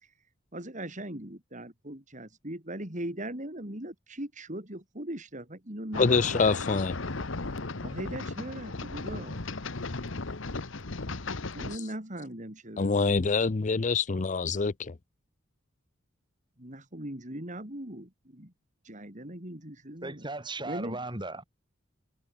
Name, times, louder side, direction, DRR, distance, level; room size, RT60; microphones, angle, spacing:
voice 1, 0.5-6.6 7.8-9.4 11.5-13.0 13.2-13.4 16.6-18.5 18.8-20.3 20.6-21.0, right 1 dB, 40° right, 4.4 m, -39 dB
sound 1, 5.9-11.8, left 3 dB, 65° left, 1.3 m, -36 dB
voice 2, 6.0-7.0 12.8-14.9, left 4 dB, 40° left, 0.5 m, -25 dB
voice 3, 20.0-21.4, right 2 dB, 25° right, 6.8 m, -36 dB
head